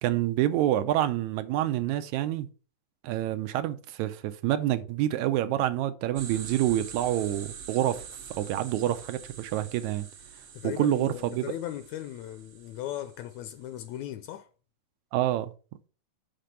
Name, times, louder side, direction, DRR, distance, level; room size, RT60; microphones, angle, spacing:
voice 1, 0.0-2.5 3.0-8.0 8.4-10.1 10.6-11.4 15.1-15.5, right 13 dB, 80° right, 1.9 m, -27 dB
sound 1, 6.2-13.9, right 6 dB, 55° right, 2.0 m, -45 dB
voice 2, 10.5-14.5, left 12 dB, 80° left, 1.7 m, -37 dB
5.9 x 5.1 x 5.5 m
omnidirectional pair, 3.4 m